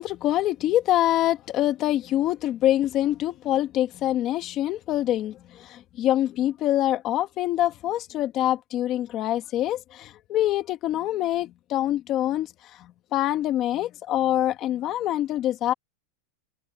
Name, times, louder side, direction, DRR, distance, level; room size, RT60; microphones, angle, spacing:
voice 1, 0.0-15.7, left 13 dB, 30° left, 1.8 m, -25 dB
open air
supercardioid pair, 170°, 0 cm